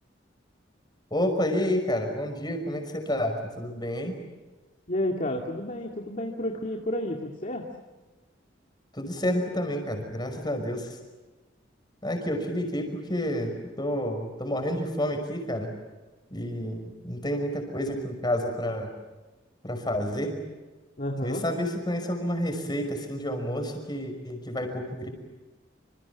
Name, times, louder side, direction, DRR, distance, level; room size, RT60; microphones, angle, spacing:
voice 1, 1.1-4.1 8.9-11.0 12.0-15.7 16.3-18.9 19.6-20.4 21.2-25.1, equal, 20° left, 5 dB, 5.7 m, -29 dB
voice 2, 4.9-7.7 21.0-21.4, left 1 dB, 40° left, 1 dB, 2.3 m, -31 dB
27.5 x 27.5 x 7.2 m, 1.2 s
head